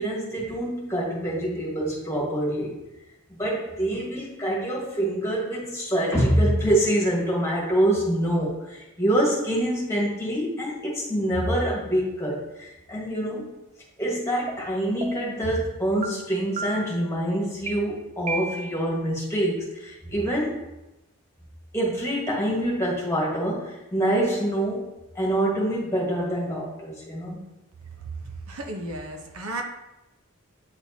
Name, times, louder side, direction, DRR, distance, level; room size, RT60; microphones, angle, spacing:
voice 1, 0.0-2.8 3.3-13.5 14.0-20.6 21.7-24.9 25.1-27.4, right 1 dB, 15° left, -4 dB, 1.5 m, -25 dB
sound 1, 14.5-14.6 15.0-15.4 16.0-16.1 16.6-17.0 17.7-17.8 18.3-18.9, right 3 dB, 30° right, 0.5 m, -33 dB
voice 2, 28.2-29.6, right 2 dB, 85° right, 2 dB, 0.9 m, -34 dB
8.8 x 4.4 x 2.8 m, 0.97 s
head